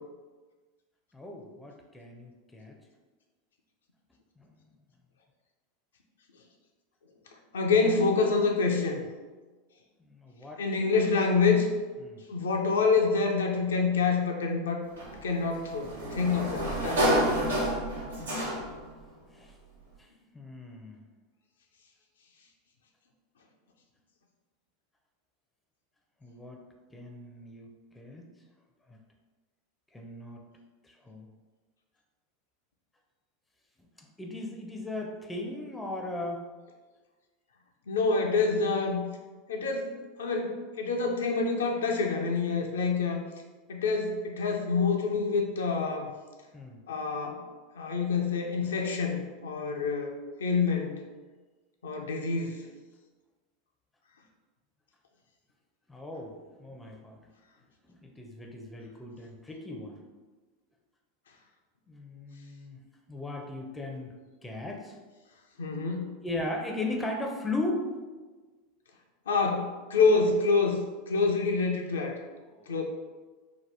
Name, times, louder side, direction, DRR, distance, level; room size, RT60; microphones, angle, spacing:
voice 1, 1.1-2.7 4.4-4.5 10.0-10.6 12.0-12.2 19.3-19.5 20.3-21.0 26.2-26.6 26.9-27.7 27.9-28.3 28.9-29.0 29.9-30.4 30.8-31.3 34.0-36.4 46.5-46.8 55.9-57.3 57.9-60.0 61.9-62.8 63.1-65.0 66.2-67.9 72.5-72.8, left 2 dB, 10° left, 2 dB, 0.5 m, -37 dB
voice 2, 7.5-9.0 10.6-11.7 12.3-14.8 15.2-17.5 37.9-39.0 39.5-39.9 40.2-43.2 43.7-46.1 46.9-47.4 47.8-51.0 51.8-52.6 65.6-66.1 69.3-70.8 71.1-72.2 72.7-72.8, left 4 dB, 75° left, 1 dB, 0.4 m, -27 dB
Sliding door, 15.0-18.9, equal, 80° right, 0.7 m, -29 dB
2.8 x 2.1 x 3.3 m, 1.3 s
hypercardioid pair, 85°, 0 cm